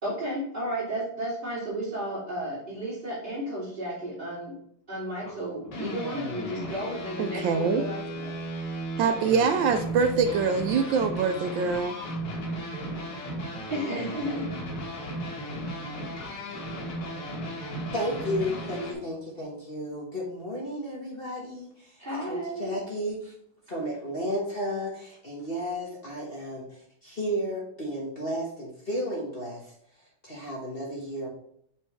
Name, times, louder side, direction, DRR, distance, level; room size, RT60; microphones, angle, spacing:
voice 1, 0.0-4.5 4.9-8.3 13.7-14.5 22.0-22.6, right 1 dB, 20° right, -10 dB, 2.7 m, -33 dB
sound 1, 5.2-18.9, equal, 85° left, 2.5 m, -35 dB
voice 2, 7.2-7.8 9.0-12.0, right 5 dB, 75° right, 7 dB, 1.1 m, -24 dB
voice 3, 17.9-23.3 23.7-26.7 27.0-29.7 30.2-31.3, equal, 35° left, -3 dB, 1.2 m, -33 dB
6.9 x 5.4 x 3.2 m, 0.68 s
omnidirectional pair, 2.4 m